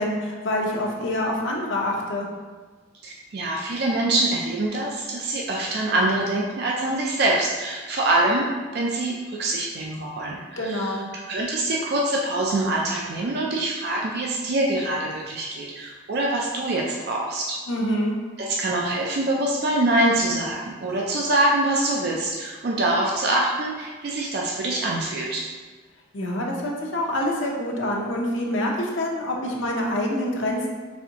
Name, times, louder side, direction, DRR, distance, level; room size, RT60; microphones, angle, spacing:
voice 1, 0.0-2.3 10.6-11.0 17.7-18.2 26.1-30.7, left 1 dB, 65° left, -1 dB, 0.7 m, -26 dB
voice 2, 3.0-8.5 8.7-11.0 11.3-17.6 18.4-25.4, right 2 dB, 50° right, -2 dB, 0.4 m, -24 dB
4.2 x 3.4 x 2.8 m, 1.4 s
head